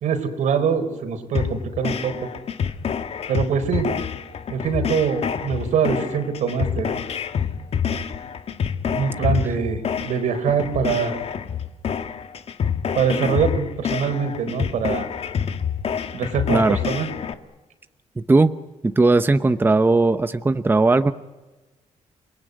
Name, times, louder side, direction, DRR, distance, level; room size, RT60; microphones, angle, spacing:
voice 1, 0.0-2.2 3.3-3.9 4.5-6.9 8.8-11.2 13.0-15.1 16.1-17.1, right 6 dB, 80° right, 8 dB, 4.1 m, -23 dB
sound 1, 1.3-17.3, left 7 dB, 55° left, 1.7 m, -27 dB
voice 2, 18.2-18.5 18.8-21.1, right 3 dB, 15° right, 10 dB, 0.9 m, -18 dB
29.5 x 20.0 x 9.5 m, 1.2 s
cardioid pair, 110°, 12 cm